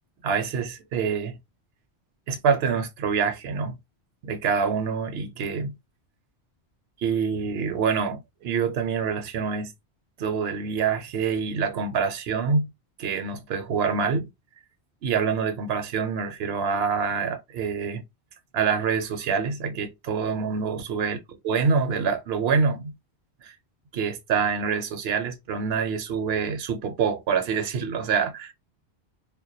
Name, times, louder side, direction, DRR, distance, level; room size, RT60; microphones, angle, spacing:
voice 1, 0.2-1.4 2.3-3.8 4.2-5.8 7.0-9.7 10.2-12.7 13.0-14.3 15.0-18.0 18.5-21.2 21.4-22.9 23.4-23.6 23.9-28.5, right 6 dB, 70° right, 0.8 m, -26 dB
2.2 x 2.1 x 2.6 m
omnidirectional pair, 1.1 m